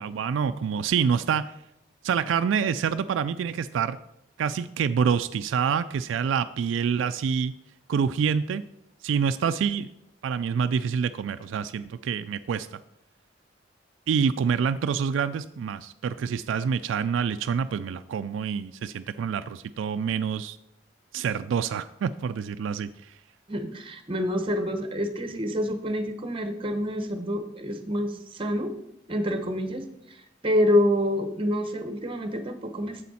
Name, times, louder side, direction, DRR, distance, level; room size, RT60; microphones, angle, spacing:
voice 1, 0.0-1.5 2.0-4.0 4.4-7.5 7.9-8.6 9.0-9.9 10.2-12.8 14.1-20.6 21.1-23.1, right 7 dB, 75° right, 11 dB, 0.3 m, -27 dB
voice 2, 23.5-28.7 29.1-30.2 30.4-33.1, equal, 30° right, 8 dB, 0.9 m, -27 dB
8.4 x 7.1 x 4.2 m, 0.82 s
head